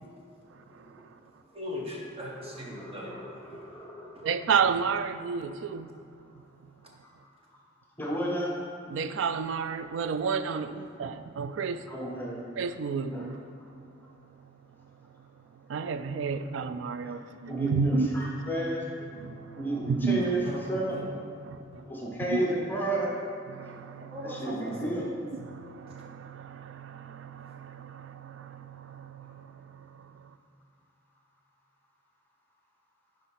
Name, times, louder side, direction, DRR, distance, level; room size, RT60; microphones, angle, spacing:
voice 1, 1.5-3.1 3.4-3.7 4.1-4.3 20.4-21.1 21.7-21.9 24.1-25.1 25.9-26.0, left 1 dB, 30° right, 1.1 m, -39 dB
voice 2, 2.7-4.3 8.0-8.5 11.9-12.4 13.1-13.3 17.0-17.2 17.5-19.1 19.6-20.4 20.7-21.0 21.9-23.1 24.2-25.1, right 1 dB, 10° left, 0.9 m, -32 dB
voice 3, 4.2-5.9 8.9-11.8 12.6-13.4 15.7-18.3 19.2-20.2 21.4-21.6 22.3-22.4 23.5-24.5 25.3-30.1, right 5 dB, 75° right, 0.3 m, -31 dB
7.5 x 5.0 x 4.2 m
head